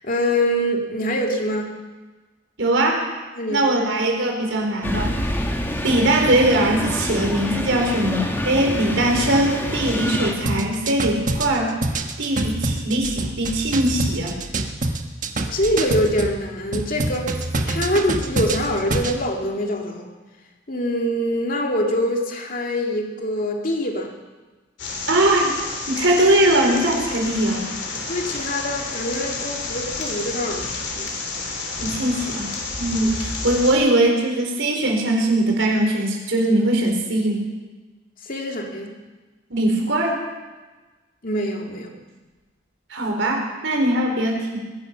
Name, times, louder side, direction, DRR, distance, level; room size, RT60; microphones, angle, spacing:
voice 1, 0.0-1.7 3.4-3.9 15.5-20.1 20.7-24.1 28.1-31.1 33.0-33.1 38.2-38.9 41.2-41.9, equal, 45° left, 1 dB, 2.4 m, -24 dB
voice 2, 2.6-3.1 3.5-5.1 5.8-11.7 12.2-14.4 25.1-25.6 25.9-27.7 31.8-32.5 32.8-37.5 39.5-40.2 42.9-44.6, right 1 dB, 75° right, 1 dB, 4.1 m, -21 dB
sound 1, 4.8-10.3, equal, 10° left, 1.7 m, -26 dB
sound 2, 10.5-16.4 16.7-19.2, right 2 dB, 45° right, 1.3 m, -25 dB
sound 3, 24.8-33.7, left 3 dB, 65° left, 3.3 m, -30 dB
22.0 x 11.0 x 5.8 m, 1.2 s
head